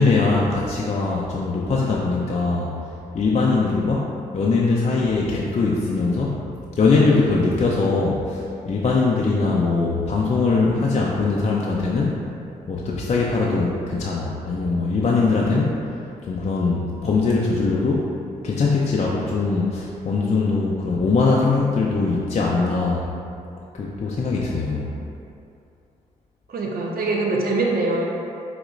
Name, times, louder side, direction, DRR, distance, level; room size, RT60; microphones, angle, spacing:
voice 1, 0.0-2.7 3.1-6.5 6.8-12.2 12.7-16.0 16.3-18.1 18.4-23.1 23.7-24.9, left 3 dB, 35° left, -3 dB, 0.5 m, -21 dB
voice 2, 26.5-28.0, right 2 dB, 55° right, -2 dB, 0.8 m, -23 dB
5.0 x 2.9 x 2.5 m, 2.6 s
hypercardioid pair, 45°, 18 cm